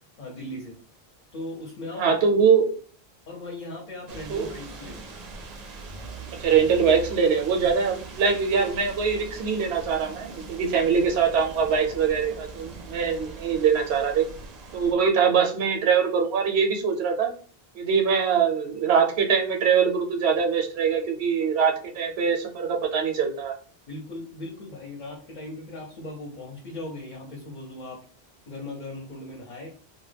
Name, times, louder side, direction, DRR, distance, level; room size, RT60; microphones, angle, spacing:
voice 1, 0.2-0.7 1.3-2.1 3.3-5.1 23.9-28.0 28.5-29.7, left 2 dB, 55° left, -2 dB, 0.7 m, -38 dB
voice 2, 2.0-2.7 4.3-4.5 6.4-14.2 14.7-17.3 17.7-23.5, right 6 dB, 85° right, 3 dB, 0.8 m, -23 dB
sound 1, 4.1-14.9, right 3 dB, 55° right, 0.5 m, -41 dB
2.2 x 2.1 x 3.2 m, 0.43 s
omnidirectional pair, 1.1 m